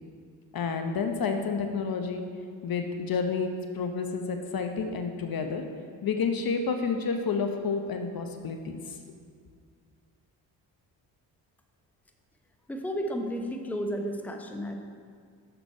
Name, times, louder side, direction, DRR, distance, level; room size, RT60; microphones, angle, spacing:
voice 1, 0.5-2.2 2.6-5.6 6.0-8.8, left 5 dB, 45° left, 5 dB, 0.8 m, -30 dB
voice 2, 12.7-14.7, equal, 5° left, 4 dB, 0.8 m, -32 dB
6.6 x 6.0 x 4.7 m, 2.1 s
hypercardioid pair, 45°, 49 cm